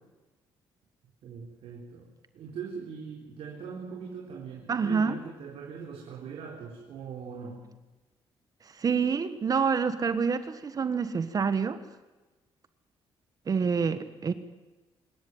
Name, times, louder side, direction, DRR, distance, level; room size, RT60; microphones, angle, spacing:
voice 1, 1.2-7.6, right 6 dB, 70° right, -1 dB, 3.9 m, -41 dB
voice 2, 4.7-5.2 8.6-11.8 13.5-14.3, right 5 dB, 40° right, 12 dB, 1.3 m, -27 dB
26.0 x 13.5 x 9.4 m, 1.2 s
cardioid pair, 115°, 10 cm